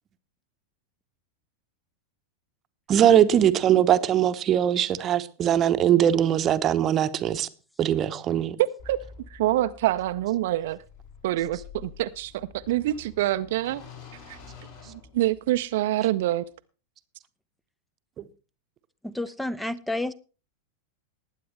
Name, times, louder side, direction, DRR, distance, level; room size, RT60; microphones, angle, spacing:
voice 1, 2.9-7.5 7.8-8.6 18.2-18.3, right 10 dB, 30° right, 0.8 m, -21 dB
voice 2, 8.6-9.0 9.3-10.8 11.2-13.8 14.3-14.4 14.9-16.5, right 14 dB, 55° right, 0.5 m, -26 dB
sound 1, 8.8-15.7, left 5 dB, 55° left, 6.5 m, -48 dB
voice 3, 19.0-20.1, left 1 dB, 5° left, 0.5 m, -30 dB
19.5 x 9.3 x 3.3 m
figure-of-eight pair, 90°, 0 cm